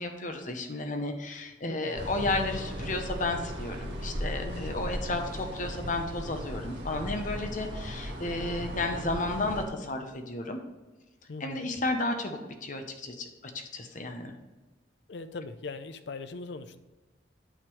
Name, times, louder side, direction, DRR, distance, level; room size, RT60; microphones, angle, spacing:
voice 1, 0.0-10.6 11.4-14.3, left 2 dB, 45° left, 5 dB, 0.9 m, -33 dB
voice 2, 1.7-2.2 4.4-4.8 11.3-11.7 15.1-16.8, left 3 dB, 65° left, 11 dB, 0.6 m, -40 dB
sound 1, 2.0-9.7, equal, 65° right, 1.8 m, -37 dB
9.0 x 6.6 x 3.2 m, 1.2 s
head